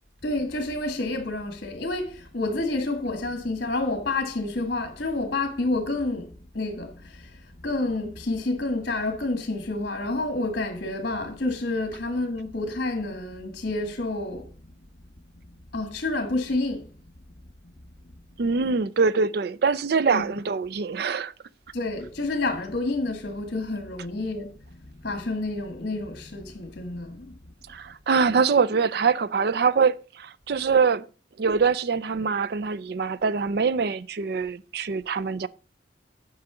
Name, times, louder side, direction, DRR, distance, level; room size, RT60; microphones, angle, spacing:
voice 1, 0.2-14.5 15.7-16.9 20.1-20.3 21.7-27.4, left 2 dB, 55° left, 1.6 m, -29 dB
voice 2, 18.4-21.3 27.7-31.1 31.4-35.5, right 5 dB, 60° right, 0.4 m, -24 dB
9.6 x 5.6 x 5.0 m
head